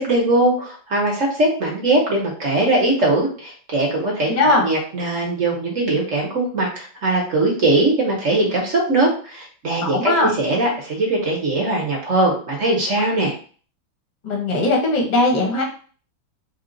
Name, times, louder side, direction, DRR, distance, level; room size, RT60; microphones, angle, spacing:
voice 1, 0.0-13.3, right 2 dB, 50° right, -1 dB, 1.1 m, -20 dB
voice 2, 4.3-4.7 9.8-10.3 14.2-15.6, left 2 dB, 35° left, -1 dB, 0.8 m, -19 dB
3.7 x 2.3 x 3.9 m, 0.41 s
omnidirectional pair, 2.2 m